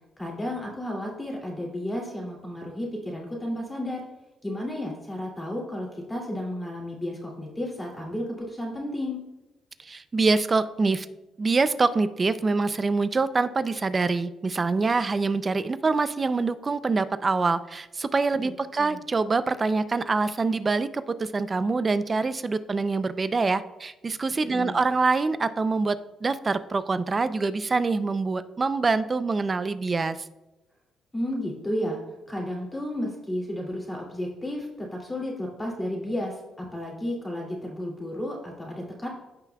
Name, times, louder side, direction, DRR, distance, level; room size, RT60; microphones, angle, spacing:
voice 1, 0.2-4.0 4.4-9.2 18.4-19.0 24.5-24.8 31.1-32.0 32.3-39.1, left 1 dB, 15° left, -3 dB, 2.6 m, -32 dB
voice 2, 9.8-11.1 11.4-30.2, right 3 dB, 30° right, 13 dB, 0.5 m, -25 dB
15.5 x 5.7 x 2.3 m, 1.0 s
cardioid pair, 90°, 0 cm